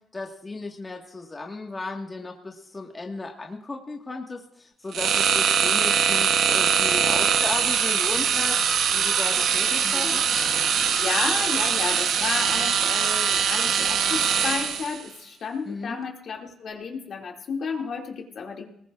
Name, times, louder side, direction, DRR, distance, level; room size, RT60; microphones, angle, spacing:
voice 1, 0.1-10.2 15.7-16.0, left 3 dB, 25° left, 1 dB, 1.6 m, -35 dB
sound 1, 4.9-15.0, right 7 dB, 70° right, 1.0 m, -22 dB
voice 2, 9.8-10.2 10.6-18.7, left 5 dB, 60° left, 1 dB, 2.3 m, -32 dB
21.0 x 19.5 x 2.5 m, 0.74 s
cardioid pair, 90°, 0 cm